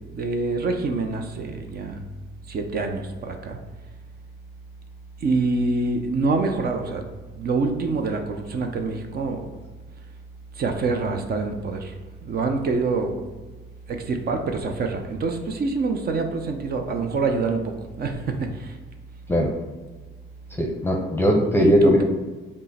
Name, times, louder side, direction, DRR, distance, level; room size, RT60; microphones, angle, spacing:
voice 1, 0.1-2.0 2.5-3.6 5.2-7.0 7.3-9.5 10.6-11.9 12.2-13.2 13.9-17.6 18.0-18.8 21.6-22.0, right 3 dB, 50° right, 5 dB, 0.6 m, -26 dB
voice 2, 20.6-22.0, equal, 10° left, 0 dB, 0.6 m, -19 dB
5.3 x 2.1 x 4.1 m, 1.2 s
cardioid pair, 90°, 20 cm